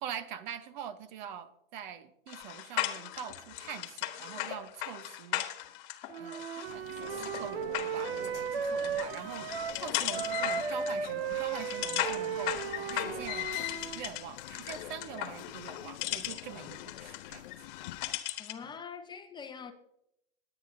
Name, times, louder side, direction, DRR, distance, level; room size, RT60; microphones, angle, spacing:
voice 1, 0.0-5.4 6.2-9.5 9.8-12.6 12.9-13.5 13.9-17.4, right 9 dB, 50° right, 1.0 m, -44 dB
sound 1, 2.3-18.7, left 15 dB, 50° left, 1.3 m, -38 dB
Wind instrument woodwind instrument, 6.1-9.8 10.1-14.1, right 7 dB, 75° right, 1.0 m, -35 dB
sound 2, 6.6-18.2, left 13 dB, 65° left, 0.6 m, -48 dB
voice 2, 18.4-19.7, left 6 dB, 15° left, 0.8 m, -44 dB
20.0 x 8.8 x 2.7 m
hypercardioid pair, 125°, 30 cm